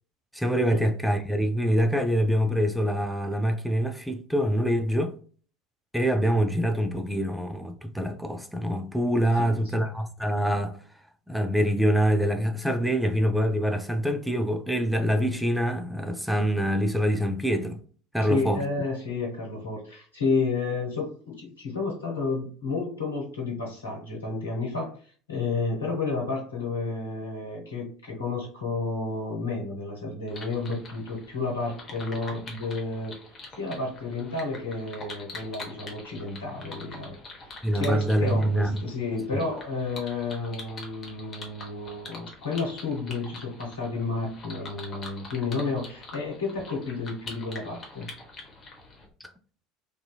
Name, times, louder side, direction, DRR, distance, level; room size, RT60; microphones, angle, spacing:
voice 1, 0.3-5.1 5.9-10.8 11.3-17.8 18.1-18.6 37.6-38.8 39.3-39.4 49.2-49.3, equal, ahead, 0.4 m, -25 dB
voice 2, 9.4-9.8 18.2-25.0 25.3-33.2 33.5-48.1, left 3 dB, 75° left, 1.0 m, -31 dB
sound 1, 30.3-49.1, left 2 dB, 30° left, 0.8 m, -44 dB
2.7 x 2.6 x 2.2 m
figure-of-eight pair, 70°, 0 cm